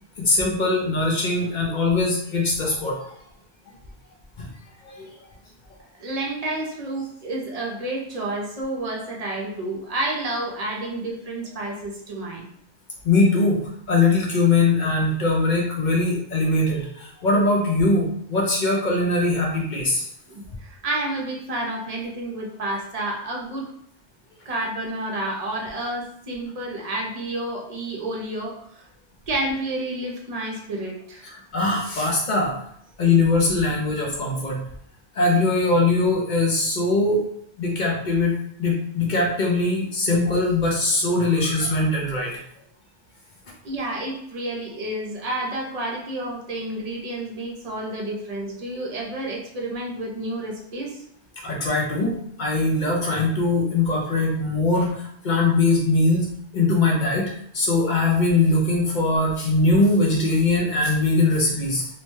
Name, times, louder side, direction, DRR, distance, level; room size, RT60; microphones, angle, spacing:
voice 1, 0.2-3.0 4.4-4.5 4.8-5.1 5.7-5.8 13.0-13.6 13.9-20.1 31.2-32.5 33.0-34.6 35.1-37.2 37.6-42.4 51.4-56.3 56.5-61.9, left 2 dB, 55° left, -2 dB, 0.7 m, -21 dB
voice 2, 6.0-12.4 20.3-23.7 24.5-28.8 29.3-31.3 43.6-51.0, right 1 dB, 45° right, -1 dB, 0.6 m, -30 dB
2.8 x 2.1 x 3.0 m, 0.68 s
omnidirectional pair, 1.1 m